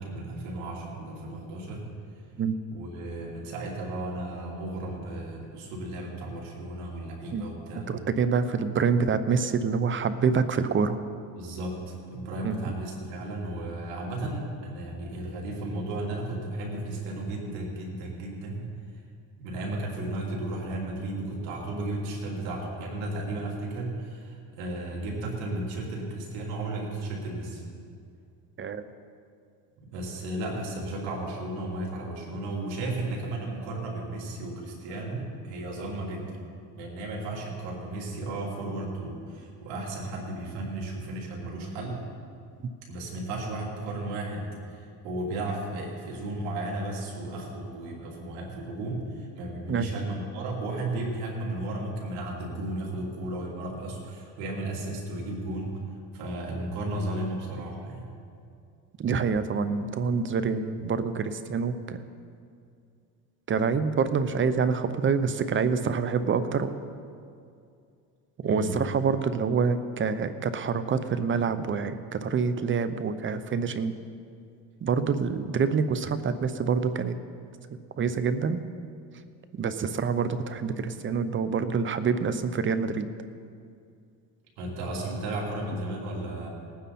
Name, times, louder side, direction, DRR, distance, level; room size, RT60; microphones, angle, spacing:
voice 1, 0.0-1.8 2.7-7.9 11.4-18.6 19.4-27.6 29.9-36.3 36.7-42.0 42.9-55.7 56.1-58.1 68.4-68.7 84.6-86.5, right 2 dB, 90° right, -2 dB, 3.1 m, -34 dB
voice 2, 7.7-11.0 12.4-12.7 28.6-28.8 49.7-49.9 59.0-62.0 63.5-66.7 68.4-73.9 74.8-77.2 78.0-78.6 79.5-83.1, right 5 dB, 30° right, 12 dB, 0.7 m, -26 dB
19.5 x 9.4 x 4.2 m, 2.4 s
cardioid pair, 110°, 38 cm